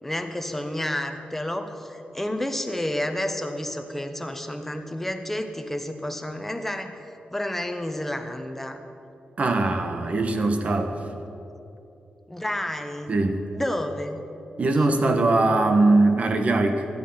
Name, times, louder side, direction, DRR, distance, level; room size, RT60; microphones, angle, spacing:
voice 1, 0.0-6.9 7.3-8.8 12.3-13.1 13.5-14.2, left 1 dB, 10° left, 6 dB, 1.1 m, -30 dB
voice 2, 9.4-11.0 13.1-13.4 14.6-16.9, right 2 dB, 45° right, 6 dB, 1.4 m, -21 dB
16.5 x 12.5 x 5.7 m, 2.9 s
wide cardioid pair, 130°, 3 cm